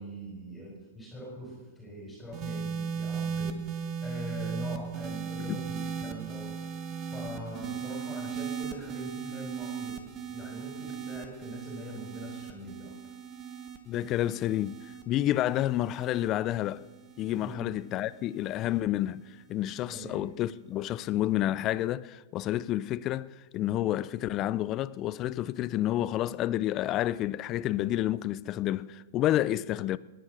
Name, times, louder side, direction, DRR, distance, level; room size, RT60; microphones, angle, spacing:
voice 1, 0.0-3.6 4.0-6.6 7.1-13.1 17.4-17.7 19.9-20.3 29.7-29.8, equal, 10° left, 4.1 m, -42 dB
sound 1, 2.3-18.8 19.7-20.1, right 7 dB, 35° right, 1.5 m, -38 dB
voice 2, 13.9-16.9 17.2-30.0, left 13 dB, 35° left, 0.5 m, -29 dB
17.5 x 10.5 x 6.3 m
hypercardioid pair, 125°, 0 cm